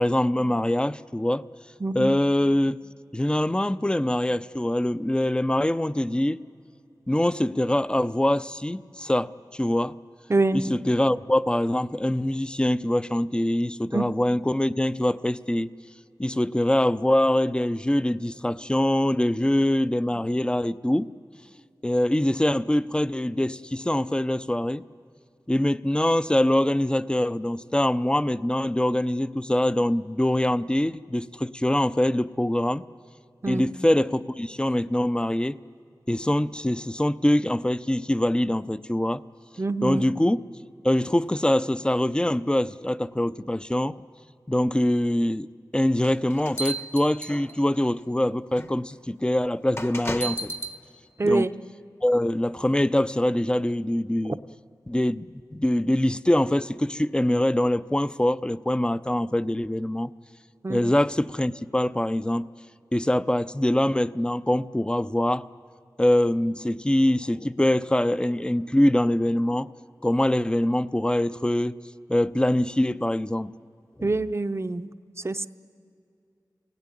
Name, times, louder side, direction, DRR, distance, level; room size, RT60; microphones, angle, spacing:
voice 1, 0.0-1.4 1.9-2.8 3.1-6.4 7.1-10.0 10.5-15.7 16.2-21.1 21.8-24.8 25.5-32.8 33.5-35.6 36.1-39.2 39.8-40.4 40.8-43.9 44.5-45.5 45.7-50.5 51.2-51.5 52.0-54.4 54.9-60.1 60.7-62.5 62.9-65.4 66.0-69.7 70.0-71.8 72.1-73.5 74.0-74.1, left 1 dB, 15° left, 15 dB, 0.5 m, -24 dB
voice 2, 1.8-2.2 10.3-10.8 13.9-14.1 33.4-33.7 39.6-40.0 51.2-51.5 60.6-60.8 74.0-74.9 75.2-75.5, right 2 dB, 40° right, 11 dB, 0.7 m, -25 dB
sound 1, 46.0-47.8 48.6-48.7 49.8-50.8, right 1 dB, 35° left, 1.2 m, -33 dB
24.0 x 17.5 x 9.9 m, 2.6 s
wide cardioid pair, 60°, 7 cm